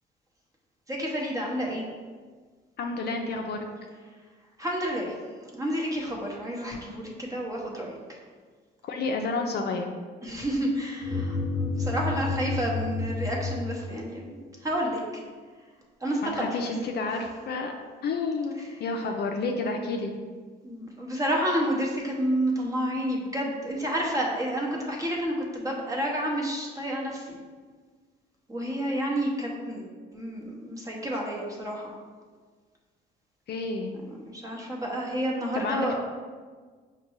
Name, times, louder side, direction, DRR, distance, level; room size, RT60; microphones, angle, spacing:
voice 1, 0.9-1.8 4.6-5.2 5.5-8.2 10.2-14.2 14.6-15.0 16.0-16.5 18.6-18.7 20.6-27.4 28.5-31.9 34.1-36.0, equal, 15° right, -2 dB, 0.9 m, -30 dB
voice 2, 2.8-3.7 8.8-9.9 16.2-17.7 18.0-20.1 33.5-33.9 35.5-36.0, left 3 dB, 50° left, 3 dB, 0.5 m, -30 dB
sound 1, 11.0-14.3, left 3 dB, 35° left, 1.1 m, -30 dB
5.3 x 2.2 x 3.0 m, 1.5 s
supercardioid pair, 75°, 21 cm